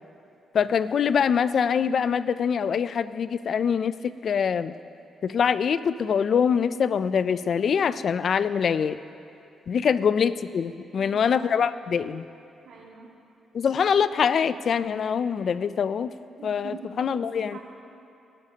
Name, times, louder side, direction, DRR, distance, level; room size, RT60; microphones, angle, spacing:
voice 1, 0.5-4.7 5.2-9.0 9.7-12.3 13.5-16.1 16.4-17.6, left 7 dB, 45° left, 14 dB, 0.3 m, -24 dB
voice 2, 11.0-11.6 12.6-13.1 16.4-17.6, right 5 dB, 70° right, -4 dB, 2.5 m, -43 dB
18.0 x 12.0 x 2.8 m, 2.8 s
cardioid pair, 180°, 0 cm